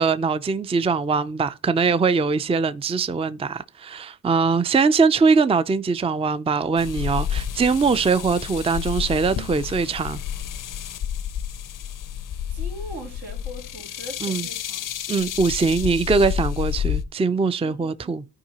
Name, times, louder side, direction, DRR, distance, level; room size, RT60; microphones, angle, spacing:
voice 1, 0.0-10.2 14.2-14.5 15.1-18.2, right 4 dB, 15° right, 0.4 m, -22 dB
sound 1, 6.8-17.0, left 9 dB, 60° left, 0.6 m, -30 dB
voice 2, 12.5-14.9 17.6-18.1, equal, 80° right, 2.4 m, -40 dB
13.5 x 4.6 x 2.9 m
cardioid pair, 75°, 35 cm